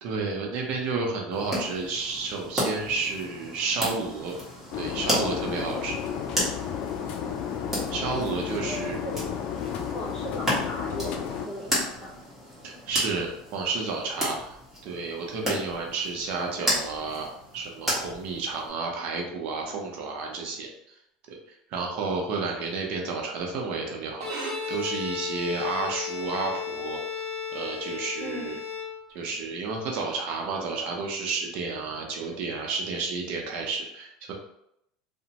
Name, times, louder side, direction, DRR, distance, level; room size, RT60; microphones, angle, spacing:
voice 1, 0.0-4.4 4.7-6.0 7.9-9.0 12.6-14.5 14.8-17.3 17.5-20.7 21.3-21.4 21.7-27.2 27.5-28.6 29.1-34.3, right 4 dB, 60° right, 0 dB, 0.6 m, -31 dB
sound 1, 1.3-18.7, equal, 10° right, 1.3 m, -34 dB
sound 2, 4.7-11.5, left 8 dB, 50° left, 0.3 m, -32 dB
voice 2, 8.6-9.4 9.9-12.2 28.2-28.6, equal, 20° left, -4 dB, 0.9 m, -38 dB
Bowed string instrument, 24.1-29.4, left 6 dB, 80° right, 0.9 m, -34 dB
2.9 x 2.1 x 2.8 m, 0.78 s
supercardioid pair, 125°, 3 cm